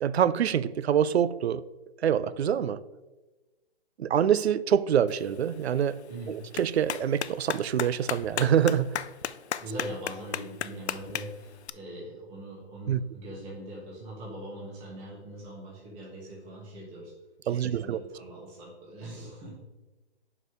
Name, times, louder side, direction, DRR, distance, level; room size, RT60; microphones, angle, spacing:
voice 1, 0.0-1.6 2.0-2.8 4.0-6.0 6.3-8.9 12.9-13.0 17.5-18.0, right 9 dB, 75° right, 0.5 m, -25 dB
Clapping, 5.1-11.7, left 9 dB, 85° left, 0.5 m, -37 dB
voice 2, 9.6-17.1 17.4-19.5, right 1 dB, 10° right, 1.2 m, -41 dB
5.4 x 4.8 x 6.2 m
hypercardioid pair, 165°, 32 cm